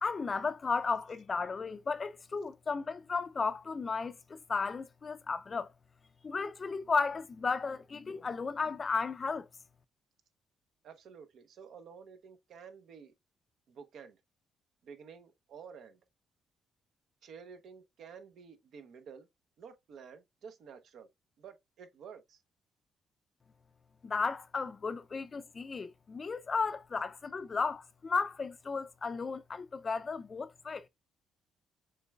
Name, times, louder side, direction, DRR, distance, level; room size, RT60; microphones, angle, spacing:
voice 1, 0.0-5.7 6.2-9.5 24.0-30.9, left 4 dB, 35° left, 0.4 m, -34 dB
voice 2, 10.8-13.1 13.7-14.2 14.8-16.0 17.2-19.3 19.6-21.1 21.4-22.4, right 6 dB, 70° right, 0.8 m, -51 dB
6.6 x 3.3 x 2.3 m
cardioid pair, 90°, 0 cm